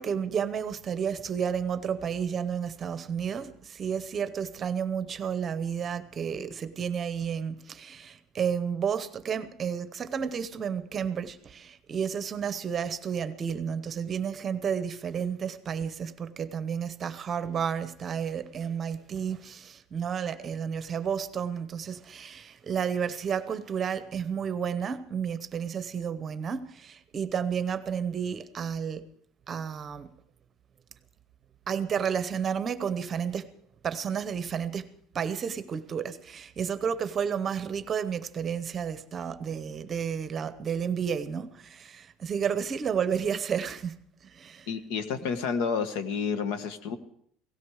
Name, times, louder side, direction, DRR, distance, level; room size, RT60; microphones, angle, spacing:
voice 1, 0.0-29.0 29.5-30.1 31.7-33.5 33.8-44.7, right 7 dB, 25° right, 0.8 m, -31 dB
voice 2, 44.7-47.0, left 6 dB, 80° left, 1.5 m, -30 dB
17.5 x 16.0 x 4.8 m
cardioid pair, 180°, 0 cm